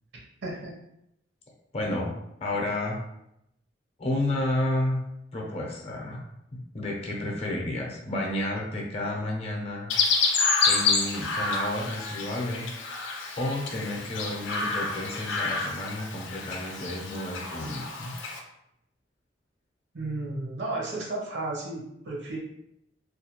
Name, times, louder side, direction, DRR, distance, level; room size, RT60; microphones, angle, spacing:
voice 1, 0.4-0.7 19.9-22.4, right 2 dB, 65° right, -3 dB, 0.8 m, -33 dB
voice 2, 1.7-2.1 2.4-3.0 4.0-5.0 5.3-6.2 6.7-9.9 10.7-12.7 13.4-18.1, left 1 dB, 35° left, -2 dB, 0.5 m, -31 dB
Chirp tweet, 9.9-18.4, left 4 dB, 90° left, 0.4 m, -28 dB
2.4 x 2.2 x 2.9 m, 0.81 s
head